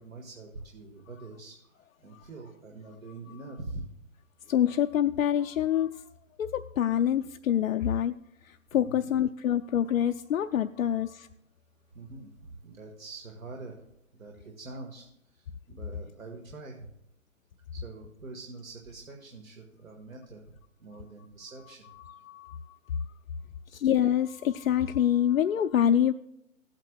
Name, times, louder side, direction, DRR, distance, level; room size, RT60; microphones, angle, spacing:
voice 1, 0.0-3.8 8.7-9.0 11.9-13.8 14.2-16.9 17.7-21.8, right 3 dB, 85° right, 0 dB, 1.8 m, -45 dB
voice 2, 4.5-6.0 6.4-8.1 8.4-11.3 22.1-22.8 23.7-26.1, left 10 dB, 80° left, 6 dB, 0.5 m, -26 dB
16.0 x 8.9 x 2.3 m, 0.79 s
hypercardioid pair, 145°, 40 cm